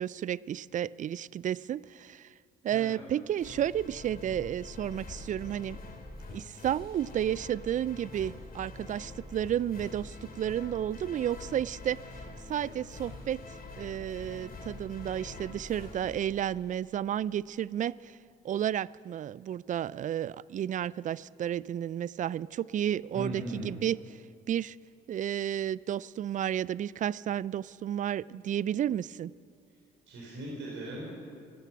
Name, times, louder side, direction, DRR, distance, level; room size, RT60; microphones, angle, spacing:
voice 1, 0.0-2.3 2.6-5.8 6.3-12.0 12.5-18.2 18.4-24.2 24.5-24.8 25.1-29.3, right 10 dB, 40° right, 22 dB, 0.4 m, -32 dB
voice 2, 2.7-3.0 23.1-23.7 30.1-31.1, right 1 dB, 65° right, -3 dB, 4.3 m, -38 dB
sound 1, 3.4-17.0, left 3 dB, 45° left, 2.5 m, -45 dB
17.0 x 12.5 x 5.8 m, 2.3 s
hypercardioid pair, 55°, 21 cm